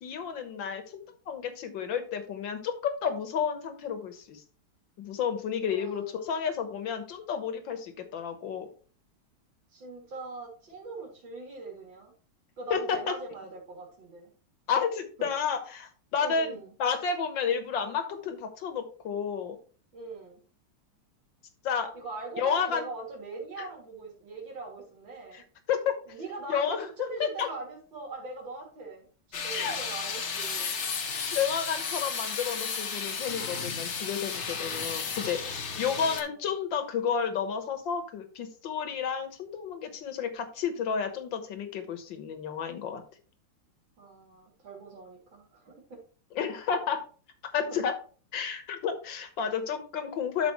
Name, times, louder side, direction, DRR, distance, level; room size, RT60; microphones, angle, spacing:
voice 1, 0.0-4.4 5.0-8.7 12.7-13.1 14.7-19.6 21.6-21.9 22.4-22.9 25.3-25.4 25.7-25.9 26.5-27.5 29.5-29.8 30.6-30.8 31.3-43.0 46.4-47.0 47.5-47.9 48.3-50.5, left 7 dB, 65° left, 8 dB, 1.9 m, -31 dB
voice 2, 5.7-6.2 9.7-12.1 12.6-14.3 15.2-15.3 16.2-16.7 19.9-20.4 21.9-25.5 26.1-30.7 35.7-36.4 44.0-46.0 47.7-47.9, right 3 dB, 65° right, -1 dB, 3.5 m, -41 dB
sound 1, 29.3-36.2, left 5 dB, 45° left, 1.0 m, -33 dB
12.0 x 5.1 x 3.1 m, 0.40 s
omnidirectional pair, 2.3 m